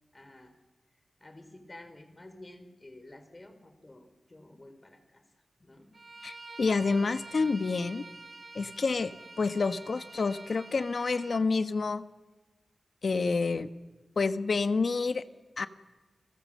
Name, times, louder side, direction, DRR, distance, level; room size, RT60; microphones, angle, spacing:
voice 1, 0.1-0.5 1.2-5.2 5.6-5.9, left 1 dB, 30° left, 8 dB, 4.1 m, -51 dB
Bowed string instrument, 5.9-11.4, right 3 dB, 45° right, 1.9 m, -47 dB
voice 2, 6.2-8.0 8.5-12.1 13.0-13.7 14.2-15.2 15.6-15.7, left 4 dB, 65° left, 11 dB, 1.2 m, -28 dB
30.0 x 21.5 x 7.6 m, 1.2 s
wide cardioid pair, 95°, 0 cm